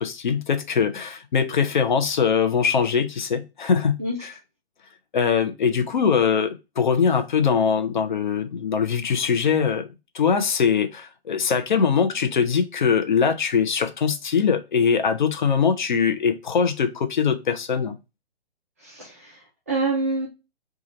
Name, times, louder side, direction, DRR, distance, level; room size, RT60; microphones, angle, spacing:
voice 1, 0.0-4.3 5.1-9.9 10.1-18.0, left 6 dB, 50° left, 0.6 m, -22 dB
voice 2, 18.8-20.3, right 3 dB, 15° right, 0.4 m, -27 dB
2.9 x 2.4 x 3.9 m
figure-of-eight pair, 130°, 31 cm